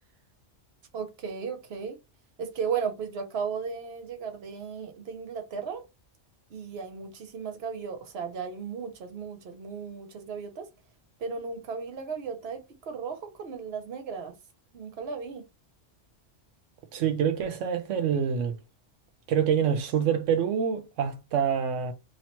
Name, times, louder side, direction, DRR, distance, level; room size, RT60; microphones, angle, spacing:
voice 1, 0.9-2.0 2.4-5.8 6.5-10.7 11.2-14.3 14.7-15.4, right 6 dB, 60° right, 1.1 m, -35 dB
voice 2, 16.9-18.6 19.3-21.9, right 8 dB, 85° right, 1.0 m, -26 dB
3.0 x 2.9 x 4.2 m
omnidirectional pair, 1.2 m